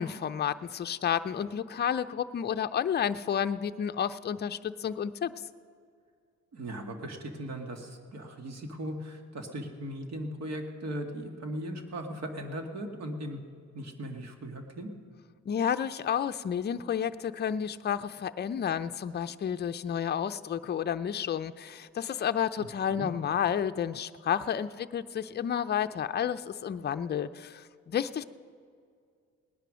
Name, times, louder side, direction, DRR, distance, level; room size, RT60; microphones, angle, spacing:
voice 1, 0.0-5.3 15.5-28.2, left 8 dB, 35° left, 9 dB, 0.5 m, -31 dB
voice 2, 6.5-13.4 13.7-14.9 22.9-23.1, right 1 dB, 60° right, 5 dB, 1.9 m, -38 dB
18.5 x 10.5 x 6.3 m, 2.2 s
cardioid pair, 90°, 30 cm